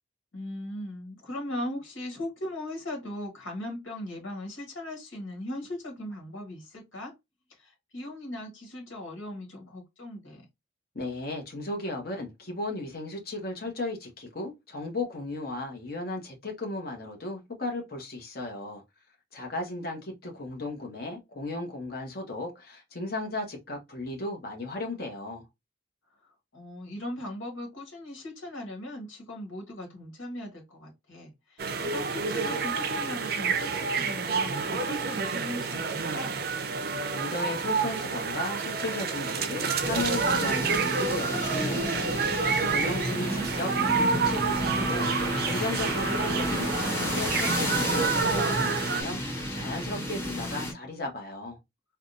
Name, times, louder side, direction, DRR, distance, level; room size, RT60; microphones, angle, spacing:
voice 1, 0.3-7.1 7.6-10.4 26.5-36.4 42.9-44.4, left 1 dB, 80° left, 1.4 m, -39 dB
voice 2, 10.9-18.8 19.3-25.4 37.1-42.2 42.7-51.6, left 2 dB, 50° left, 1.0 m, -35 dB
sound 1, 31.6-49.0, right 5 dB, 50° right, 0.5 m, -29 dB
sound 2, 39.8-50.7, left 1 dB, 10° left, 0.9 m, -31 dB
3.5 x 2.2 x 2.5 m
head